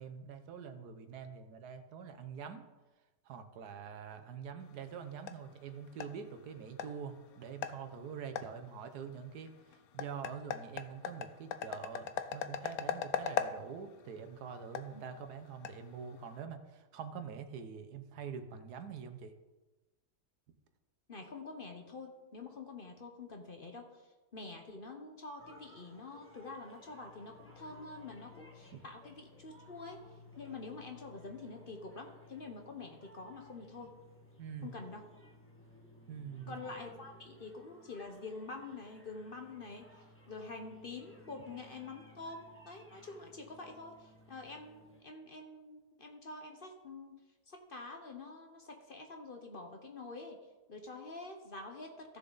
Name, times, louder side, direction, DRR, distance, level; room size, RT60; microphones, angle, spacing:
voice 1, 0.0-2.7 3.2-19.3 28.7-28.8 34.4-34.8 36.1-36.6, right 6 dB, 80° right, 8 dB, 1.4 m, -45 dB
sound 1, 4.6-16.4, left 8 dB, 75° left, 1.1 m, -42 dB
voice 2, 21.1-34.0 34.6-35.1 36.5-50.4 50.7-52.2, left 3 dB, 40° left, 3 dB, 1.0 m, -47 dB
sound 2, 25.4-45.0, left 1 dB, 10° left, 1.3 m, -58 dB
15.0 x 6.8 x 4.0 m, 1.2 s
omnidirectional pair, 1.7 m